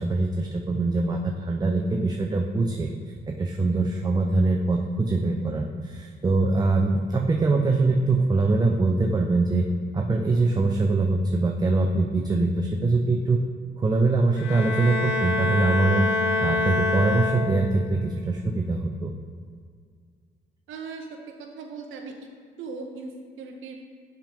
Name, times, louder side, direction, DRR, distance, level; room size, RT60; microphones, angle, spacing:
voice 1, 0.0-2.9 3.3-9.7 9.9-13.4 13.8-16.1 16.4-19.1, right 3 dB, 20° right, 2 dB, 0.4 m, -23 dB
Bowed string instrument, 14.4-17.9, left 3 dB, 65° left, 1.0 m, -26 dB
voice 2, 20.7-22.3 22.6-23.7, right 4 dB, 80° right, 3 dB, 0.6 m, -38 dB
7.1 x 3.6 x 5.2 m, 2.1 s
cardioid pair, 90°, 20 cm